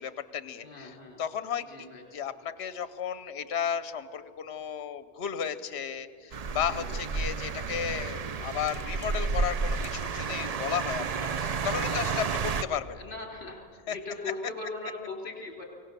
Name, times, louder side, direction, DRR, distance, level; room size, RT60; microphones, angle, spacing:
voice 1, 0.0-13.0 13.9-14.0, left 8 dB, 70° left, 13 dB, 1.1 m, -34 dB
voice 2, 0.6-1.2 1.6-2.1 6.6-7.0 11.0-11.2 11.6-12.2 12.9-13.6 13.9-15.6, left 3 dB, 50° left, 1 dB, 3.4 m, -40 dB
sound 1, 6.3-12.6, right 5 dB, 45° right, 0.5 m, -31 dB
23.5 x 17.0 x 6.8 m, 2.2 s
omnidirectional pair, 1.2 m